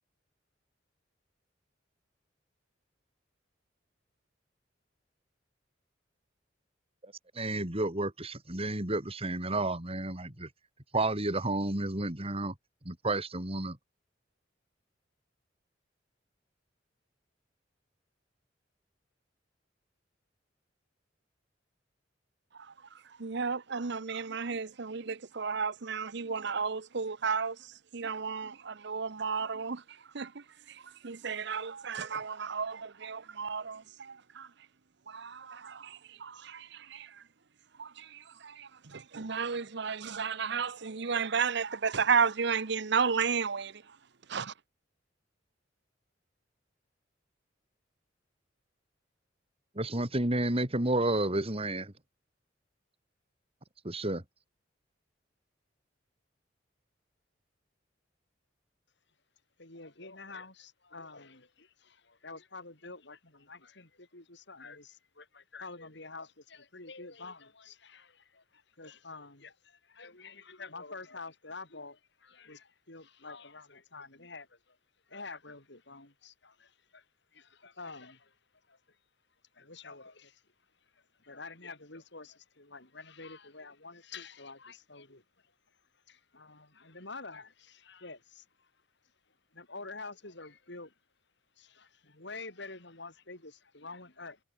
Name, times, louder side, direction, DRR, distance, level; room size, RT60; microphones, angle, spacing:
voice 1, 7.0-10.5 10.9-12.5 12.8-13.8 49.7-51.9 53.8-54.2, right 2 dB, 30° right, 3.5 m, -31 dB
voice 2, 23.2-27.6 27.9-29.8 30.1-30.3 31.0-34.5 35.1-37.1 37.8-43.7 44.3-44.5, right 5 dB, 65° right, 0.9 m, -33 dB
voice 3, 59.6-74.8 75.1-77.0 77.3-78.3 78.7-78.8 79.5-80.4 80.9-85.2 86.1-88.7 89.5-90.9 91.6-94.4, left 3 dB, 65° left, 7.5 m, -48 dB
head